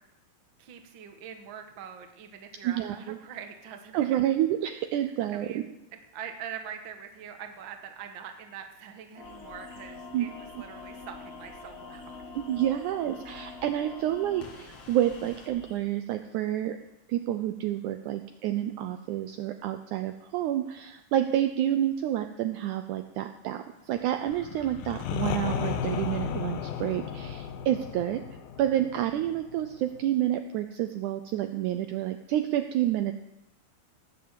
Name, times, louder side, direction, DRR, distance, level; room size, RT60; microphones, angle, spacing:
voice 1, 0.6-4.2 5.3-12.2 28.5-28.6, right 8 dB, 60° right, 5 dB, 1.2 m, -43 dB
voice 2, 2.6-3.2 3.9-5.6 10.1-10.3 12.3-16.8 17.1-28.2 28.6-33.1, right 12 dB, 90° right, 8 dB, 1.7 m, -29 dB
sound 1, 9.1-15.5, left 4 dB, 50° left, 2.3 m, -46 dB
sound 2, 9.2-15.8, left 1 dB, 30° left, 2.5 m, -54 dB
sound 3, 24.3-30.0, left 8 dB, 80° left, 2.6 m, -34 dB
18.0 x 6.9 x 7.5 m, 0.90 s
omnidirectional pair, 4.2 m